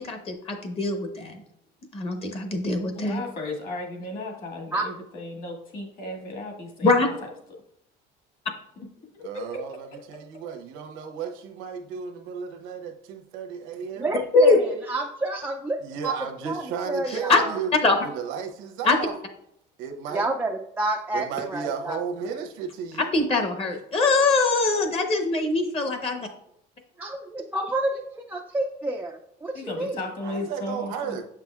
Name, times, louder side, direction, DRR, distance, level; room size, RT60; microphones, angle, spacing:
voice 1, 0.0-1.4 1.9-3.2 6.8-7.1 14.3-14.6 17.3-17.4 17.8-18.0 18.8-19.0 23.0-26.3, left 3 dB, 30° left, 5 dB, 0.9 m, -22 dB
voice 2, 2.9-7.1 9.3-9.6 29.5-31.2, left 2 dB, 45° left, 1 dB, 1.7 m, -35 dB
voice 3, 9.2-14.2 15.8-17.7 18.0-19.1 19.8-20.2 21.1-23.1 30.2-31.2, right 6 dB, 85° right, 4 dB, 0.9 m, -34 dB
voice 4, 13.9-16.1 16.5-17.6 20.1-22.0 27.0-28.0 28.3-30.0, right 2 dB, 10° right, 0 dB, 0.3 m, -29 dB
7.3 x 5.9 x 2.4 m, 0.74 s
cardioid pair, 155°, 20 cm